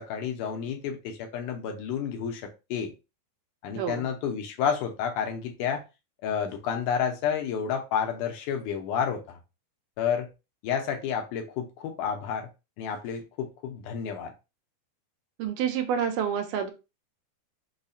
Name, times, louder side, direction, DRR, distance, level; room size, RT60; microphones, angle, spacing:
voice 1, 0.0-2.4 2.7-2.9 3.6-5.8 6.2-9.4 10.0-10.3 10.6-12.5 12.8-14.3, left 7 dB, 80° left, 2.0 m, -30 dB
voice 2, 3.8-4.1 15.4-16.7, right 8 dB, 90° right, 2.2 m, -28 dB
5.4 x 2.1 x 2.6 m
omnidirectional pair, 3.8 m